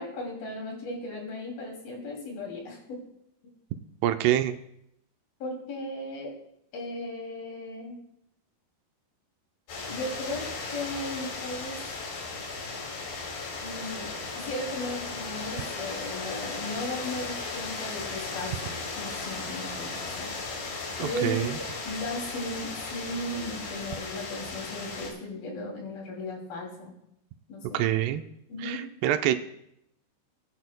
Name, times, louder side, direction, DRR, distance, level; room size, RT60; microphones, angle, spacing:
voice 1, 0.0-3.0 5.4-6.3 6.7-8.0 9.9-10.4 10.7-11.8 13.6-14.1 14.4-20.3 21.0-26.9 27.5-27.8 28.5-28.8, left 1 dB, 60° left, 0 dB, 4.3 m, -36 dB
voice 2, 4.0-4.6 21.0-21.6 27.7-28.2 28.6-29.4, right 12 dB, 85° right, 8 dB, 2.7 m, -26 dB
sound 1, 9.7-25.1, left 3 dB, 75° left, 4.5 m, -36 dB
21.0 x 10.5 x 2.2 m, 0.79 s
omnidirectional pair, 4.8 m